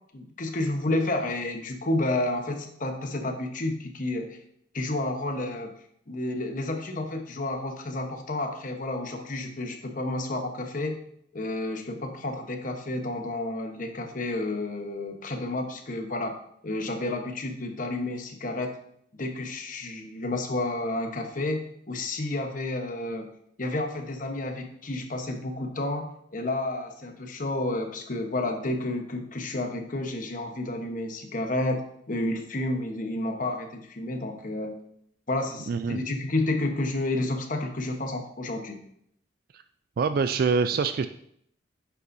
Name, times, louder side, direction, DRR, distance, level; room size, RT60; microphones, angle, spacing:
voice 1, 0.1-4.4 4.7-5.7 6.1-11.0 11.3-16.3 16.6-18.8 19.2-23.3 23.6-34.7 35.3-38.8, left 2 dB, 45° left, 4 dB, 1.0 m, -30 dB
voice 2, 35.7-36.0 39.5-39.6 40.0-41.1, right 5 dB, 50° right, 11 dB, 0.3 m, -25 dB
9.2 x 6.9 x 2.6 m, 0.70 s
head